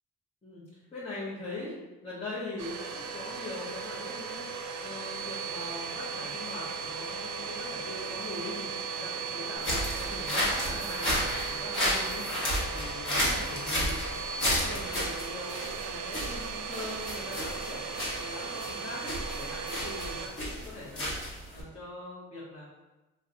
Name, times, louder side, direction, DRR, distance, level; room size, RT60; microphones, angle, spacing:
voice 1, 0.4-13.9 14.4-17.8 18.1-21.1 21.5-22.7, left 2 dB, 20° left, -10 dB, 1.0 m, -42 dB
Domestic sounds home sounds, 2.6-20.3, right 5 dB, 70° right, 0.5 m, -37 dB
sound 1, 9.6-21.6, equal, 40° left, 1.3 m, -32 dB
3.6 x 2.4 x 2.7 m, 1.1 s
cardioid pair, 90°, 30 cm